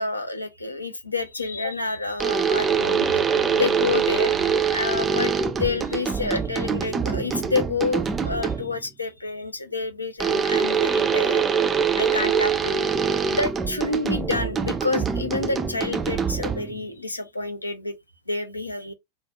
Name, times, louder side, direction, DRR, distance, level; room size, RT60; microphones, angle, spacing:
voice 1, 0.0-11.4 12.0-12.9 13.3-18.0 18.3-18.9, left 3 dB, 85° left, 0.5 m, -29 dB
sound 1, 2.2-8.8 10.2-16.8, right 6 dB, 20° right, 0.3 m, -24 dB
2.3 x 2.2 x 2.8 m
figure-of-eight pair, 90°, 0 cm